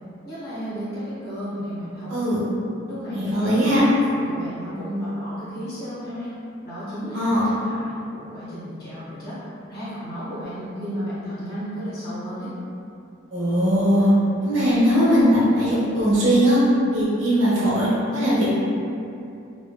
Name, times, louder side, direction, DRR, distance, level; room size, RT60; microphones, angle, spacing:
voice 1, 0.2-2.1 2.9-3.6 4.1-6.3 6.6-9.4 9.7-12.5, equal, 50° left, -12 dB, 0.9 m, -33 dB
voice 2, 2.1-2.4 3.1-3.8 7.1-7.4 13.3-14.1 14.4-16.6 16.9-18.6, equal, 75° right, -9 dB, 0.9 m, -20 dB
3.0 x 2.0 x 2.3 m, 2.6 s
head